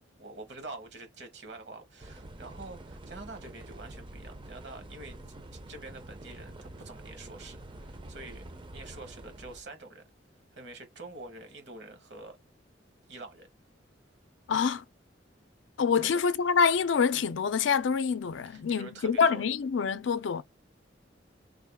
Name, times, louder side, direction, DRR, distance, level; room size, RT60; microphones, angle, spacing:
voice 1, 0.0-8.4 8.7-10.1 10.5-12.4 13.1-13.5 16.0-16.2 18.5-19.4, right 2 dB, 65° right, 1.2 m, -46 dB
sound 1, 2.0-9.6, right 1 dB, 25° right, 0.5 m, -46 dB
voice 2, 14.5-14.8 15.8-20.4, left 6 dB, 80° left, 0.4 m, -26 dB
3.5 x 2.3 x 3.5 m
head